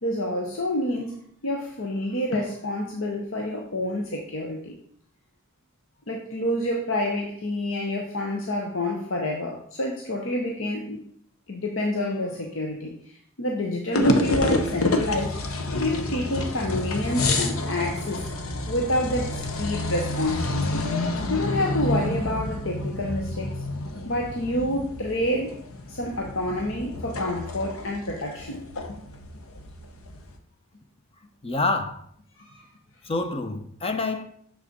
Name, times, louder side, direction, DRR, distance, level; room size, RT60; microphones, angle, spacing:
voice 1, 0.0-4.7 6.1-11.0 11.5-15.4 15.7-18.3 18.7-20.8 21.3-23.6 24.0-25.5 25.9-28.6 28.9-29.0 32.4-32.6, left 1 dB, 65° left, 1.0 m, -28 dB
sound 1, 13.9-30.3, left 2 dB, 90° left, 1.0 m, -29 dB
voice 2, 31.4-32.0 33.0-34.2, left 3 dB, 30° left, 0.8 m, -27 dB
6.6 x 6.5 x 5.2 m
head